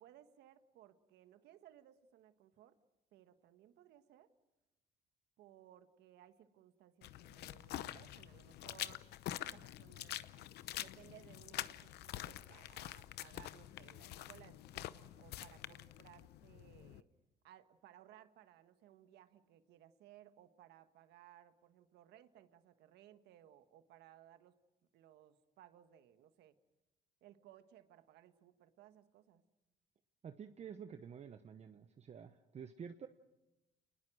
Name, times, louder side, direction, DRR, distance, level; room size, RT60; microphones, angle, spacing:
voice 1, 0.0-2.8 3.1-4.3 5.4-9.1 9.4-10.3 10.7-17.1 17.4-24.6 24.9-26.6 27.2-29.4, right 12 dB, 80° right, 10 dB, 1.5 m, -62 dB
sound 1, 7.0-17.0, left 14 dB, 75° left, 0.8 m, -46 dB
voice 2, 30.2-33.1, right 7 dB, 40° right, 8 dB, 1.0 m, -50 dB
29.0 x 20.5 x 6.4 m, 1.0 s
cardioid pair, 110°, 17 cm